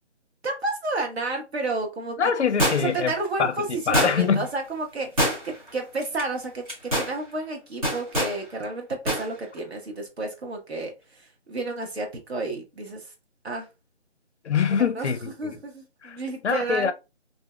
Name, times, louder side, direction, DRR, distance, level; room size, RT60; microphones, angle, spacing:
voice 1, 0.4-2.2 2.8-13.1 13.4-13.7 14.8-15.1 15.4-16.9, right 3 dB, 60° right, 1.0 m, -31 dB
voice 2, 2.2-3.1 3.4-3.5 3.9-4.5 14.4-15.6 16.0-16.2 16.4-16.9, left 6 dB, 70° left, 0.5 m, -24 dB
sound 1, 2.6-3.1 3.9-4.4 5.2-5.7 6.0-6.2 6.7-7.1 7.8-8.4 9.1-9.3 9.6-9.7, equal, 30° right, 0.9 m, -24 dB
2.7 x 2.1 x 2.2 m
figure-of-eight pair, 165°, 35 cm